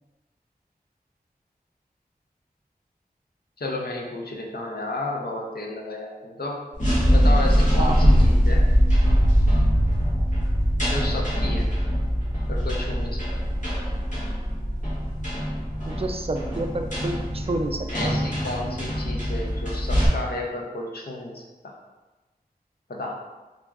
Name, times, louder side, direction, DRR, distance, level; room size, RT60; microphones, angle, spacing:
voice 1, 3.6-6.7 7.1-8.6 10.8-11.7 12.5-13.2 17.9-21.7 22.9-23.2, left 2 dB, 70° left, -1 dB, 0.6 m, -32 dB
sound 1, 6.7-20.1, equal, 50° left, 1.2 m, -22 dB
voice 2, 15.8-18.2, right 2 dB, 35° right, 4 dB, 0.4 m, -29 dB
4.2 x 2.4 x 2.3 m, 1.2 s
wide cardioid pair, 40°, 17 cm